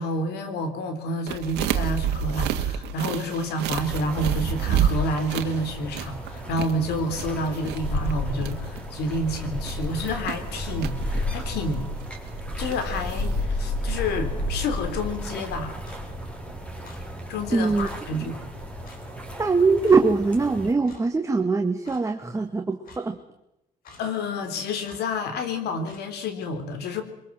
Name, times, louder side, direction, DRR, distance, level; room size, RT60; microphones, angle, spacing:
voice 1, 0.0-11.9 12.6-15.8 17.3-18.4 24.0-27.0, left 1 dB, 75° left, 8 dB, 3.8 m, -29 dB
sound 1, 1.3-13.4, right 9 dB, 85° right, 1.9 m, -30 dB
sound 2, 3.9-20.7, left 1 dB, 5° left, 5.0 m, -33 dB
Clock, 15.8-16.0 16.8-17.0 17.8-18.0 18.8-19.0 19.8-20.0 20.8-21.0 21.8-22.0 22.8-23.0 23.8-24.0 24.8-25.0 25.8-26.0, left 3 dB, 60° left, 5.6 m, -48 dB
voice 2, 17.5-17.9 18.2-18.3 19.4-23.2, right 4 dB, 15° right, 4 dB, 1.9 m, -22 dB
24.0 x 22.5 x 7.7 m, 0.85 s
cardioid pair, 110°, 17 cm